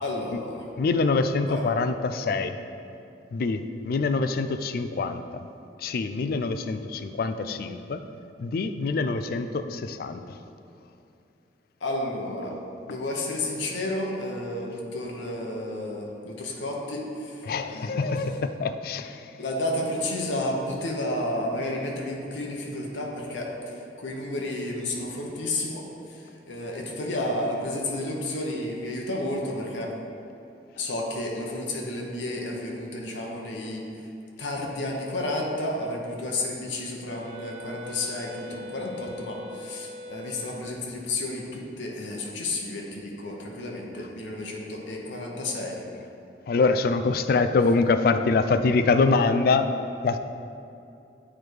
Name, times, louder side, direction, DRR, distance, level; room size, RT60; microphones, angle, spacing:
voice 1, 0.0-0.7 1.5-1.6 11.8-12.6 12.8-18.2 19.4-29.9 30.8-34.1 34.4-45.8, left 1 dB, 90° left, 0 dB, 0.9 m, -31 dB
voice 2, 0.8-2.6 3.3-5.4 5.8-8.0 8.4-10.4 17.5-19.2 46.5-49.7 50.0-50.2, left 4 dB, 55° left, 9 dB, 0.3 m, -25 dB
Wind instrument woodwind instrument, 37.0-40.9, left 1 dB, 60° right, 0.5 m, -42 dB
8.8 x 3.2 x 4.5 m, 2.6 s
head